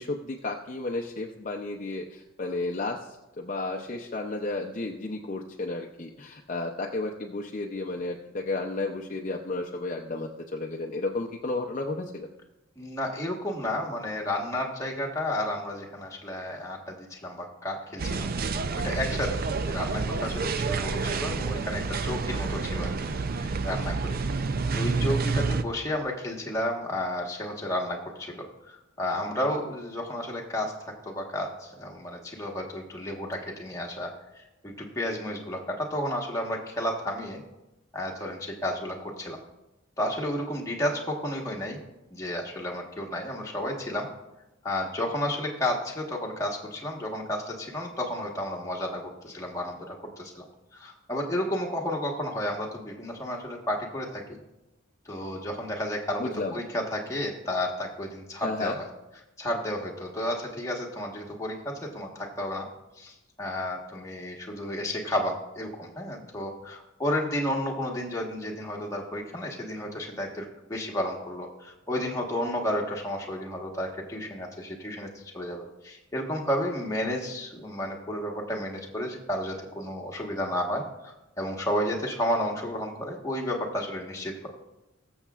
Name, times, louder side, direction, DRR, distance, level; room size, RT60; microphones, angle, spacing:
voice 1, 0.0-12.3 56.2-56.5 58.4-58.8, left 2 dB, 40° left, 1 dB, 0.6 m, -32 dB
voice 2, 12.8-18.3 18.7-19.4 19.7-22.9 23.4-24.2 24.7-30.7 31.0-37.4 37.9-39.4 40.0-41.8 42.1-44.1 44.6-50.4 50.7-54.4 55.0-58.7 59.4-62.7 63.0-80.8 81.4-84.5, left 1 dB, 15° left, -1 dB, 1.3 m, -32 dB
sound 1, 18.0-25.6, right 4 dB, 45° right, 0.4 m, -29 dB
21.0 x 7.1 x 2.4 m, 0.97 s
head